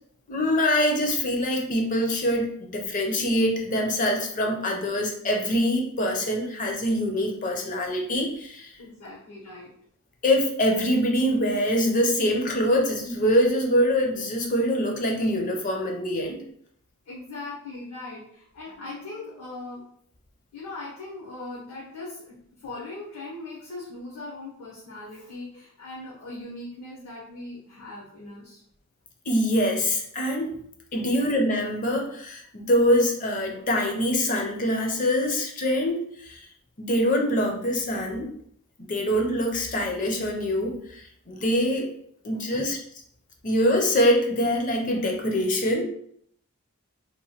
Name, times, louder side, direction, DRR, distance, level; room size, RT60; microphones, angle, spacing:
voice 1, 0.3-8.7 10.2-16.4 29.3-30.5 30.9-36.4 36.8-38.3 38.8-41.9 42.2-42.8 43.4-45.8, equal, 35° left, 1 dB, 0.5 m, -24 dB
voice 2, 8.8-9.7 17.1-19.8 20.5-22.4 22.6-28.6 42.3-42.7, left 2 dB, 75° left, -6 dB, 0.7 m, -39 dB
2.9 x 2.2 x 2.8 m, 0.68 s
head